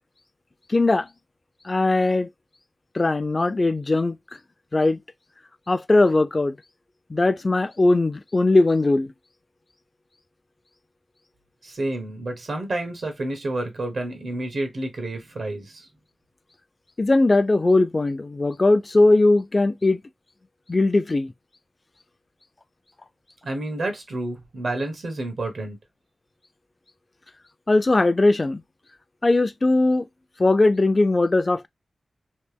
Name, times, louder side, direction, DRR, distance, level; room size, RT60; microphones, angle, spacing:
voice 1, 0.7-1.1 1.6-2.3 2.9-4.2 4.7-5.0 5.7-6.6 7.1-9.1 17.0-20.0 20.7-21.3 27.7-28.6 29.2-30.0 30.4-31.7, left 2 dB, 35° left, 0.4 m, -19 dB
voice 2, 11.6-15.9 23.4-25.8, right 2 dB, 80° right, 1.2 m, -29 dB
3.2 x 2.9 x 3.3 m
wide cardioid pair, 95°, 0 cm